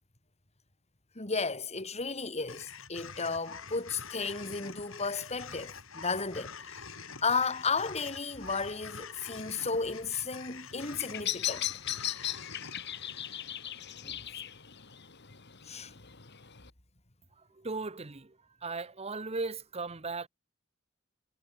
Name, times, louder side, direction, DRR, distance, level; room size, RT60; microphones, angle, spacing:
voice 1, 1.2-6.8 7.2-11.7 14.0-14.2 15.7-16.0, left 4 dB, 35° left, 4.1 m, -34 dB
sound 1, 2.5-14.8, left 5 dB, 75° left, 4.6 m, -47 dB
Bird vocalization bird call bird song, 10.7-16.7, left 12 dB, 60° left, 2.7 m, -38 dB
voice 2, 17.3-20.3, right 3 dB, 30° right, 1.1 m, -37 dB
head